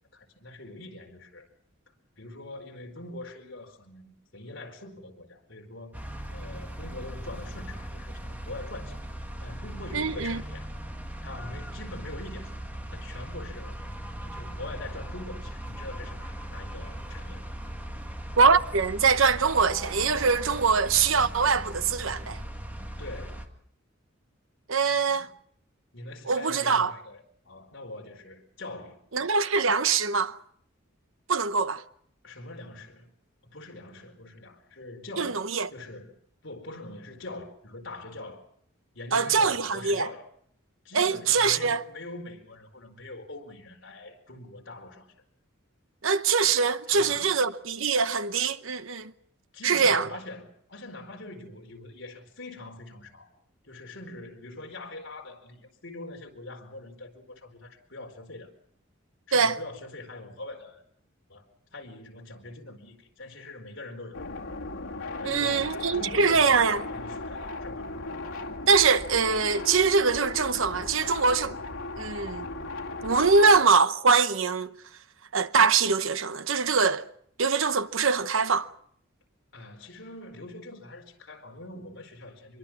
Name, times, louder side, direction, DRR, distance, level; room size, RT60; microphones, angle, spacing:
voice 1, 0.1-1.5 2.2-9.0 9.4-10.7 11.2-12.6 12.9-13.8 14.2-17.5 23.0-23.5 24.7-25.3 25.9-29.0 32.2-33.1 33.4-35.4 35.7-36.2 36.4-38.4 38.9-40.3 40.8-45.1 46.9-47.4 49.5-53.3 53.6-58.5 59.3-60.8 61.3-61.4 61.7-64.2 65.2-67.9 79.5-82.6, left 2 dB, 60° left, 4.4 m, -43 dB
sound 1, 5.9-23.5, right 1 dB, 10° right, 1.9 m, -38 dB
voice 2, 9.9-10.4 18.4-22.4 24.7-25.3 26.3-26.9 29.1-30.4 31.3-31.8 35.2-35.7 39.1-40.1 40.9-41.8 46.0-49.1 49.6-50.1 59.3-59.6 65.2-66.9 68.7-71.5 72.0-72.5 73.0-74.7 75.3-77.1 77.4-78.7, right 5 dB, 75° right, 1.0 m, -23 dB
sound 2, 64.1-73.6, left 2 dB, 85° left, 2.4 m, -37 dB
25.0 x 23.0 x 6.1 m
head